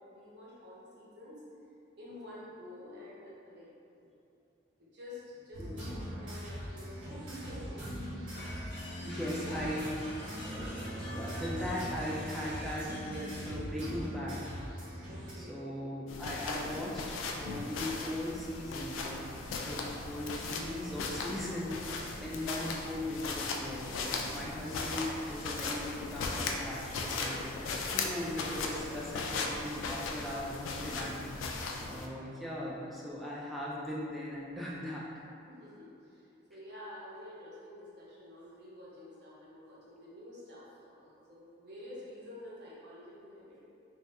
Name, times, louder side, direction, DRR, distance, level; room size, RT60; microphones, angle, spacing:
voice 1, 0.0-1.4 2.0-4.1 4.8-7.8 8.1-8.6 9.0-9.6 15.0-15.7 35.5-43.6, left 1 dB, 55° right, -7 dB, 0.8 m, -49 dB
sound 1, 5.5-15.3, equal, 75° right, 1.2 m, -41 dB
sound 2, 8.4-13.6, left 1 dB, 60° left, 0.7 m, -48 dB
voice 2, 9.0-9.9 10.4-14.5 15.3-35.0, left 1 dB, ahead, -6 dB, 0.3 m, -39 dB
sound 3, 16.1-32.1, left 3 dB, 90° left, 0.3 m, -37 dB
2.6 x 2.4 x 3.3 m, 2.6 s
head